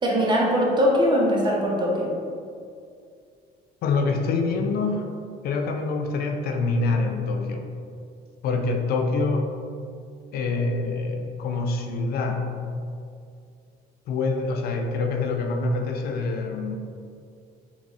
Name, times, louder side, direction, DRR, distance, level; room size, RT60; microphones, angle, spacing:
voice 1, 0.0-2.1, equal, 25° right, -3 dB, 0.9 m, -21 dB
voice 2, 3.8-5.1 5.4-7.7 8.4-9.5 10.3-12.5 14.1-16.8, left 3 dB, 65° left, 4 dB, 0.5 m, -25 dB
3.5 x 3.0 x 4.0 m, 2.3 s
cardioid pair, 110°, 17 cm